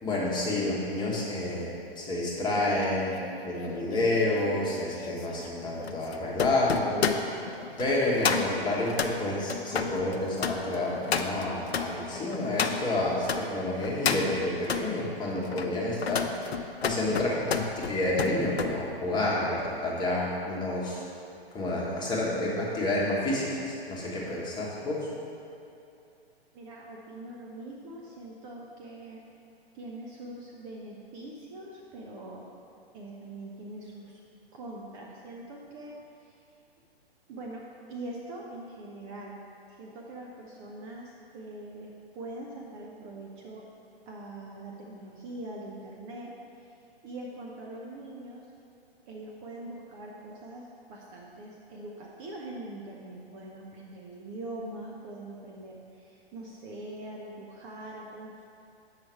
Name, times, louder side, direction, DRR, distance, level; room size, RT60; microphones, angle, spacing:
voice 1, 0.0-1.7 2.0-7.1 7.8-16.5 16.8-21.0 21.5-25.1, left 1 dB, 15° left, -5 dB, 1.3 m, -29 dB
sound 1, 2.8-13.4 13.8-14.9 15.4-18.7 19.1-19.4, left 6 dB, 75° left, 0.6 m, -32 dB
voice 2, 26.5-29.2 29.7-32.4 32.9-34.2 34.5-36.4 37.3-39.4 39.7-43.7 44.1-46.3 46.6-46.7 47.0-48.5 49.1-58.5, right 2 dB, 30° right, -2 dB, 0.8 m, -43 dB
7.7 x 5.7 x 4.5 m, 2.7 s
figure-of-eight pair, 120°, 31 cm